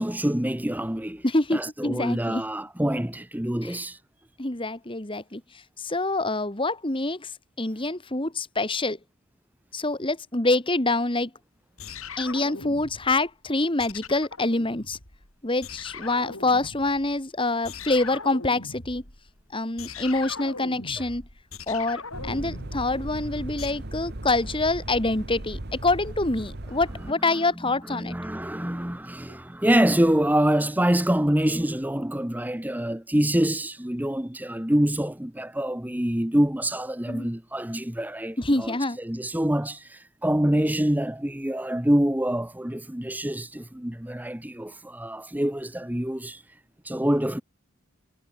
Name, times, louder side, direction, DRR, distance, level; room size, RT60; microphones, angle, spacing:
voice 1, 0.0-1.2 1.5-4.0 27.3-27.4 27.9-46.4 46.8-47.4, right 1 dB, 10° right, 1.0 m, -26 dB
voice 2, 1.2-2.4 3.6-3.8 4.4-5.4 5.8-7.3 7.6-9.0 9.7-11.3 12.2-15.0 15.4-19.0 19.5-21.2 21.7-28.2 37.1-37.3 38.4-39.0, left 2 dB, 25° left, 1.8 m, -26 dB
sound 1, 11.8-13.3 13.8-15.3 15.6-17.2 17.6-23.7, left 4 dB, 85° left, 7.9 m, -40 dB
sound 2, 22.1-27.1, right 1 dB, 50° right, 1.8 m, -37 dB
head